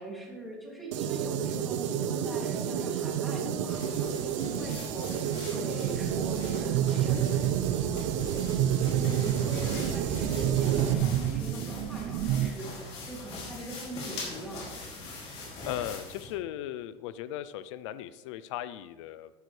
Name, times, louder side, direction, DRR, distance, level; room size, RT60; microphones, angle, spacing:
voice 1, 0.0-7.9 8.5-14.8, right 1 dB, ahead, -4 dB, 2.6 m, -43 dB
sound 1, 0.9-10.9, right 8 dB, 85° right, 1.0 m, -31 dB
sound 2, 3.7-16.3, left 2 dB, 40° left, 3.0 m, -43 dB
sound 3, 5.8-12.5, right 11 dB, 45° right, 0.5 m, -29 dB
voice 2, 15.6-19.3, left 12 dB, 75° left, 14 dB, 0.5 m, -37 dB
12.5 x 10.5 x 3.3 m, 1.3 s
cardioid pair, 165°, 15 cm